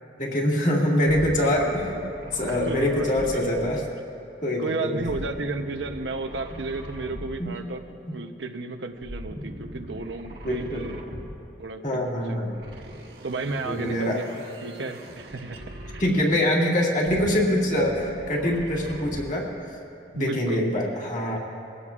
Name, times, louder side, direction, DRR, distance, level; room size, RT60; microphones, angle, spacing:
voice 1, 0.2-1.9 2.3-3.8 4.4-5.0 7.4-7.5 10.4-10.9 11.8-12.5 13.7-14.2 16.0-19.5 20.1-21.4, left 1 dB, 45° left, -2 dB, 2.1 m, -24 dB
sound 1, 1.0-4.1 5.0-7.7 9.0-11.6 12.5-16.5 17.0-19.5, right 1 dB, 60° right, 1.7 m, -40 dB
voice 2, 2.5-3.5 4.6-7.8 8.1-11.0 11.6-12.6 13.2-14.3 14.6-16.0 20.1-20.7, right 3 dB, 90° right, 6 dB, 0.8 m, -33 dB
22.0 x 16.5 x 2.5 m, 2.7 s
head